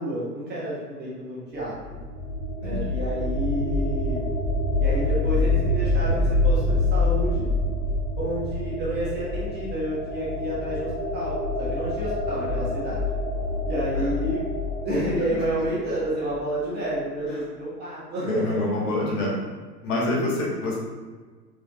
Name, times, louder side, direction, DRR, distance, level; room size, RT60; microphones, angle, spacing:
voice 1, 0.0-1.9 2.6-4.2 4.8-7.5 8.2-13.0 13.6-14.4 14.8-18.6 20.0-20.2, right 1 dB, 20° right, -8 dB, 1.4 m, -30 dB
sound 1, 1.6-16.4, left 2 dB, 20° left, 0.4 m, -26 dB
voice 2, 2.6-2.9 13.9-14.1 18.3-19.3 19.8-20.8, left 2 dB, 50° left, -3 dB, 1.2 m, -26 dB
4.7 x 3.3 x 2.8 m, 1.4 s
hypercardioid pair, 120°, 50 cm